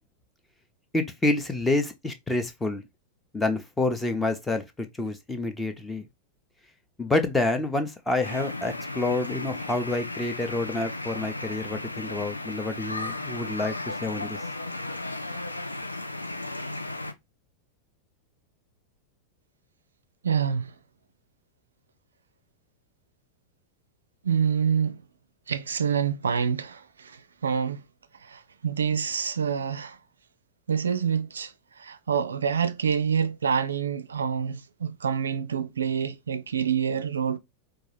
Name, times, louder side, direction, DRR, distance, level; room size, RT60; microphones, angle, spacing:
voice 1, 0.9-2.8 3.3-6.0 7.0-14.4, left 2 dB, 10° left, 0.7 m, -28 dB
sound 1, 8.2-17.1, left 2 dB, 85° left, 0.4 m, -35 dB
voice 2, 20.2-20.7 24.2-25.0 25.5-27.8 28.2-30.0 30.7-37.4, right 7 dB, 70° right, 0.4 m, -27 dB
4.6 x 2.3 x 3.0 m
figure-of-eight pair, 90°, 0 cm